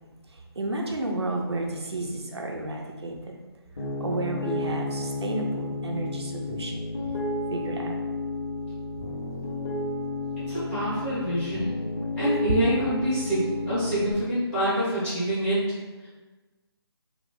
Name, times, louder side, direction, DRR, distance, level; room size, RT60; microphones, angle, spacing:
voice 1, 0.3-3.4 4.0-6.8 7.5-8.0, right 2 dB, 80° right, 1 dB, 0.5 m, -32 dB
Piano, 3.8-14.1, left 2 dB, 45° left, 0.6 m, -32 dB
voice 2, 10.5-11.7 12.2-15.6 16.0-16.1, equal, 10° left, -13 dB, 1.1 m, -26 dB
3.0 x 2.0 x 3.0 m, 1.2 s
figure-of-eight pair, 150°, 14 cm